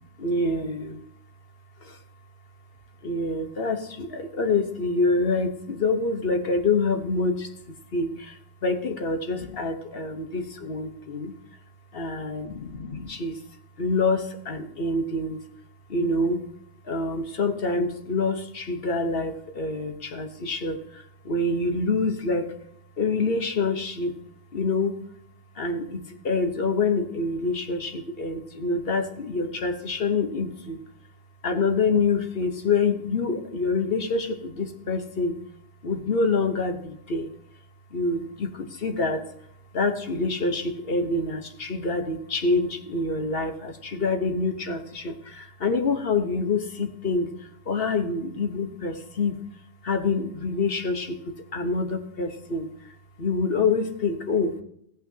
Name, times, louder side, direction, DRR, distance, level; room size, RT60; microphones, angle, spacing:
voice 1, 0.2-1.0 1.8-2.0 3.0-7.5 7.9-11.3 11.9-13.4 13.8-15.4 15.9-16.4 16.8-22.5 23.0-24.2 24.5-25.0 25.5-30.8 31.4-35.4 35.8-37.3 37.9-39.2 39.7-49.4 49.8-54.5, left 3 dB, 60° left, 6 dB, 1.3 m, -26 dB
15.5 x 8.9 x 2.8 m, 0.75 s
omnidirectional pair, 1.1 m